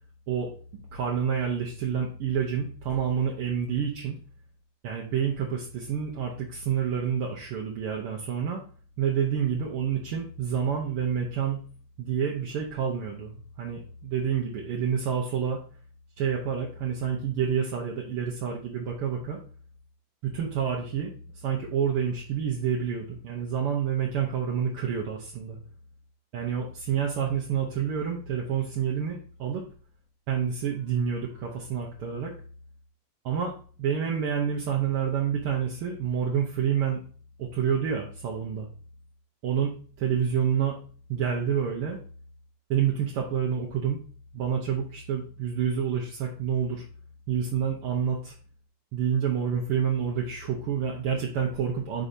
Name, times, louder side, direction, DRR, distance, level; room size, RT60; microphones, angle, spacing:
voice 1, 0.9-4.2 4.8-8.6 9.0-11.6 12.0-15.6 16.2-19.4 20.2-25.6 26.3-29.7 30.3-32.3 33.2-33.5 33.8-37.0 37.4-38.7 39.4-40.8 41.1-42.0 42.7-44.0 44.3-46.8 47.3-48.3 48.9-52.0, right 7 dB, 70° right, -1 dB, 1.4 m, -28 dB
9.5 x 5.0 x 2.7 m, 0.42 s
omnidirectional pair, 3.5 m